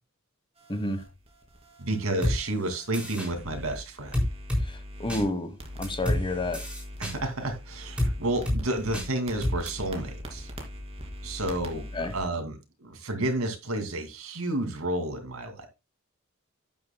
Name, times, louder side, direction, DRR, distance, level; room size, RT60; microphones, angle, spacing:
sound 1, 0.6-5.2 5.6-12.2, equal, 30° right, 2.6 m, -42 dB
voice 1, 0.7-1.0 5.0-5.5 5.8-6.6 11.9-12.1, left 1 dB, 25° left, 1.2 m, -29 dB
voice 2, 1.8-4.2 7.0-10.5 11.2-15.7, right 1 dB, 80° right, 2.4 m, -31 dB
sound 2, 2.2-2.4 2.9-3.3 4.1-4.6 5.1-5.2 5.8-6.2 6.5-7.1 8.0-8.1 8.5-8.6 8.9-9.1 9.4-9.7, left 1 dB, 5° right, 4.1 m, -27 dB
11.5 x 9.3 x 2.2 m
head